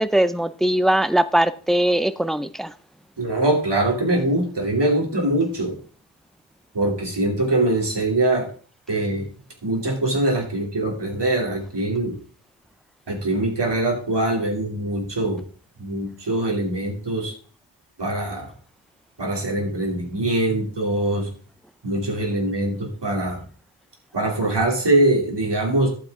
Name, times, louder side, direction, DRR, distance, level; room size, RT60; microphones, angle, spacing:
voice 1, 0.0-2.7, right 1 dB, ahead, 0.4 m, -20 dB
voice 2, 3.2-5.7 6.7-8.5 8.9-9.3 9.6-12.1 13.1-15.4 15.8-17.3 18.0-18.5 19.2-21.3 21.8-23.4 24.1-25.9, right 1 dB, 60° right, 3.1 m, -23 dB
11.5 x 7.9 x 3.7 m
wide cardioid pair, 85°, 47 cm